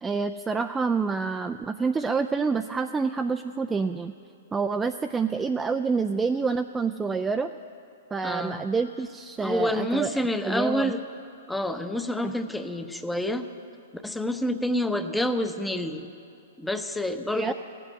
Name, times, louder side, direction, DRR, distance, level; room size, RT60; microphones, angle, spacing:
voice 1, 0.0-4.1 4.5-7.5 8.1-10.1 10.4-10.9 12.2-12.3 17.3-17.5, right 5 dB, 10° right, 7 dB, 0.3 m, -27 dB
voice 2, 8.2-8.6 9.4-11.0 11.5-13.5 13.9-16.1 16.6-17.5, left 1 dB, 5° left, 8 dB, 0.7 m, -28 dB
15.0 x 8.0 x 9.8 m, 2.5 s
hypercardioid pair, 135°, 0 cm